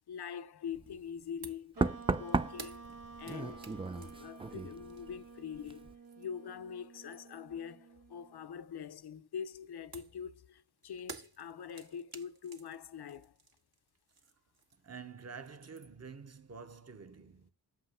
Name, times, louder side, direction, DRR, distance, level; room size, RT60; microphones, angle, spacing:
voice 1, 0.1-1.8 2.1-2.9 3.2-13.4, left 7 dB, 70° left, 0.8 m, -44 dB
Knock, 0.7-1.0 1.8-5.3 5.5-5.9, right 3 dB, 15° right, 0.3 m, -36 dB
sound 1, 1.4-1.7 2.0-6.5 6.8-7.6 9.9-15.0 15.3-16.1, right 5 dB, 65° right, 1.6 m, -53 dB
sound 2, 1.7-8.4, right 4 dB, 85° right, 1.6 m, -52 dB
voice 2, 14.8-17.5, right 5 dB, 40° right, 1.1 m, -48 dB
7.7 x 2.8 x 5.5 m
cardioid pair, 65°, 40 cm